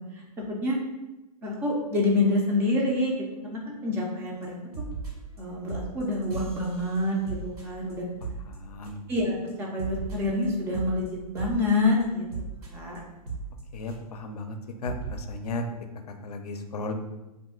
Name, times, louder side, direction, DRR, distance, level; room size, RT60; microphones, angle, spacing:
voice 1, 0.1-0.8 1.4-3.1 3.5-4.6 5.4-8.0 9.1-12.2 12.6-13.0, left 2 dB, 10° right, -2 dB, 0.3 m, -27 dB
sound 1, 4.4-4.5 4.7-5.4 5.7-9.2 9.5-14.3 14.5-14.6 14.8-15.1, right 4 dB, 70° right, 1.4 m, -38 dB
voice 2, 8.5-9.0 13.7-14.6 14.8-15.6 16.1-16.9, left 3 dB, 80° left, 6 dB, 0.5 m, -35 dB
2.4 x 2.3 x 3.6 m, 1.0 s
hypercardioid pair, 135°, 20 cm